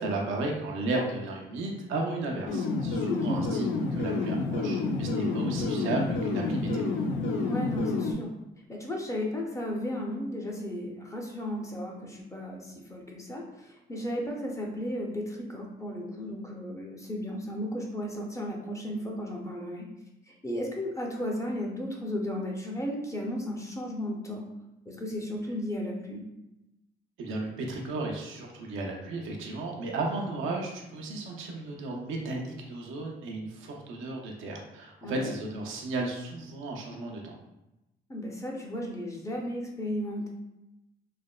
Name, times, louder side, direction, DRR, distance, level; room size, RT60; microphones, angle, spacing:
voice 1, 0.0-6.9 27.2-37.3, right 2 dB, 90° right, 0 dB, 0.6 m, -34 dB
sound 1, 2.5-8.1, left 3 dB, 80° left, 0.5 m, -29 dB
voice 2, 3.1-3.5 7.4-8.3 8.7-19.9 20.3-24.5 24.9-26.3 35.0-35.3 38.1-40.3, equal, 15° left, 0 dB, 0.5 m, -34 dB
3.2 x 2.1 x 2.2 m, 0.93 s
cardioid pair, 90°, 20 cm